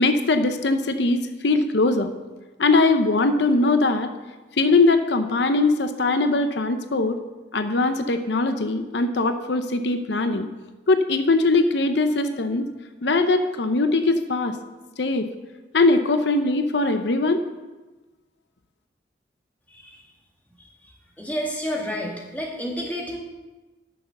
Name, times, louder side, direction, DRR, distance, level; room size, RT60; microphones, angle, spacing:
voice 1, 0.0-2.1 2.6-4.1 4.6-7.2 7.5-10.5 10.9-12.7 13.0-14.6 15.0-15.3 15.7-17.4, left 3 dB, 80° left, 8 dB, 0.7 m, -21 dB
voice 2, 21.2-23.2, equal, 10° left, -2 dB, 1.7 m, -30 dB
9.9 x 6.7 x 6.7 m, 1.2 s
head